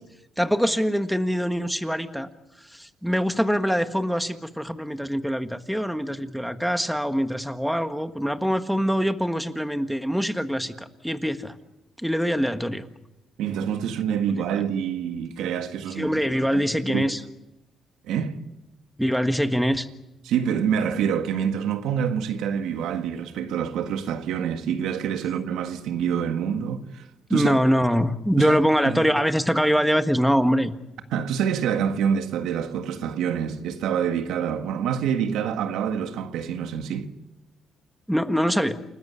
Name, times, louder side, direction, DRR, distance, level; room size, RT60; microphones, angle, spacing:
voice 1, 0.4-2.3 2.7-11.5 12.0-12.8 16.0-17.2 19.0-19.9 27.3-30.7 38.1-38.7, equal, ahead, 1.5 m, -23 dB
voice 2, 13.4-16.1 16.5-16.6 16.9-17.1 18.0-18.4 20.2-27.1 27.3-27.6 28.4-28.6 28.8-29.0 31.1-37.1, right 8 dB, 85° right, 1.7 m, -26 dB
29.0 x 13.5 x 9.8 m
cardioid pair, 90°, 0 cm